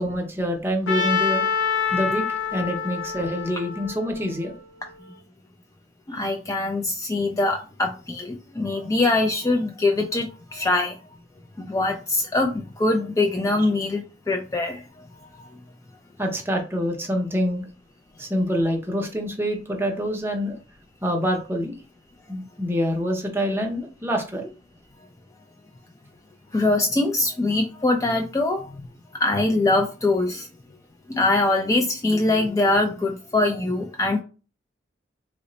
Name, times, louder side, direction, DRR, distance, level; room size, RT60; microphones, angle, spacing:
voice 1, 0.0-1.4 1.9-2.2 2.5-4.5 16.2-17.6 18.2-20.5 21.0-21.8 22.3-24.5, equal, 15° right, 2 dB, 0.7 m, -26 dB
Trumpet, 0.9-4.9, left 5 dB, 85° left, 0.6 m, -26 dB
voice 2, 6.1-11.0 11.6-15.1 15.4-15.5 26.5-28.9 29.1-30.5 31.1-34.2, left 2 dB, 20° left, 4 dB, 0.3 m, -23 dB
3.0 x 2.1 x 3.9 m, 0.34 s
head